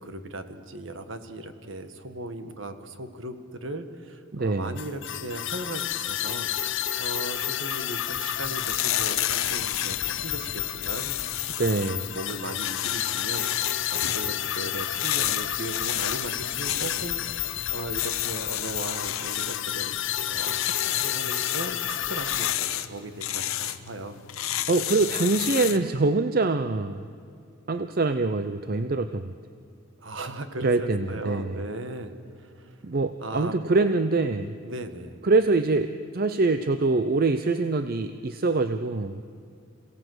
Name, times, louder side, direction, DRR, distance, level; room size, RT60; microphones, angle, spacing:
voice 1, 0.0-11.8 12.1-19.9 20.2-24.2 30.0-32.8 33.2-33.9 34.6-35.1, right 2 dB, 65° right, 8 dB, 1.5 m, -38 dB
voice 2, 4.3-4.8 11.6-12.1 24.7-27.1 27.7-29.3 30.6-31.6 32.8-34.6 35.2-39.2, right 3 dB, 45° right, 10 dB, 0.6 m, -24 dB
sound 1, 4.8-22.6, left 11 dB, 60° left, 0.7 m, -31 dB
sound 2, 8.2-25.9, left 12 dB, 85° left, 0.9 m, -32 dB
27.5 x 17.5 x 8.0 m, 2.3 s
head